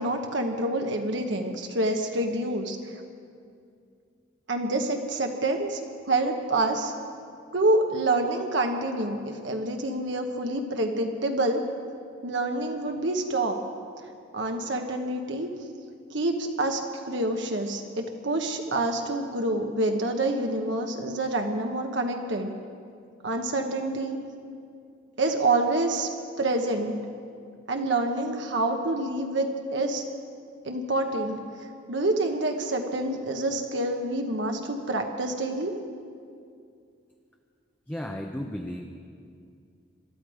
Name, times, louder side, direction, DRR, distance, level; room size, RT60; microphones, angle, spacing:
voice 1, 0.0-2.8 4.5-5.8 6.1-6.9 7.5-11.6 12.2-13.6 14.3-15.5 16.1-16.8 17.1-22.5 23.2-24.2 25.2-26.1 26.4-27.0 27.7-30.0 30.6-31.4 31.9-35.7, right 2 dB, 70° right, 3 dB, 1.1 m, -27 dB
voice 2, 37.9-38.8, left 1 dB, 10° left, 2 dB, 0.7 m, -34 dB
22.0 x 13.0 x 5.0 m, 2.3 s
head